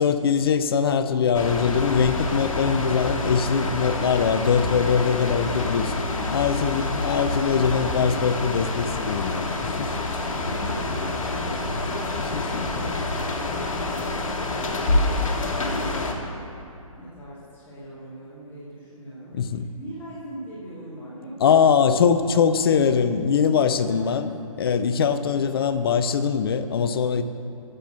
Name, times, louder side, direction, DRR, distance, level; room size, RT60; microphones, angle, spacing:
voice 1, 0.0-6.0 6.3-9.5 9.8-9.9 12.3-12.9 19.3-19.7 21.4-24.3 24.6-27.2, left 6 dB, 45° left, 10 dB, 0.5 m, -22 dB
sound 1, 1.3-16.1, left 2 dB, 65° left, 1.4 m, -27 dB
voice 2, 6.1-6.8 10.3-14.5 15.1-16.4 16.9-22.0 23.8-24.5, right 1 dB, 10° left, -11 dB, 2.3 m, -41 dB
9.0 x 6.8 x 7.5 m, 2.6 s
figure-of-eight pair, 135°, 18 cm